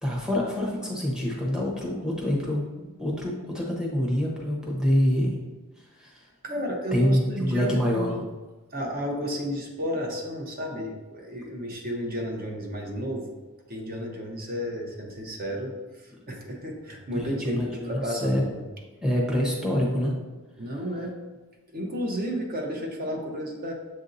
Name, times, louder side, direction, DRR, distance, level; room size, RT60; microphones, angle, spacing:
voice 1, 0.0-5.4 6.0-6.2 6.9-8.1 17.1-18.5 19.0-20.1, equal, 5° right, -3 dB, 0.8 m, -26 dB
voice 2, 6.4-8.2 8.7-13.4 13.7-18.6 20.6-21.2 21.7-23.7, equal, 40° right, 1 dB, 0.8 m, -32 dB
7.5 x 2.7 x 2.6 m, 1.2 s
head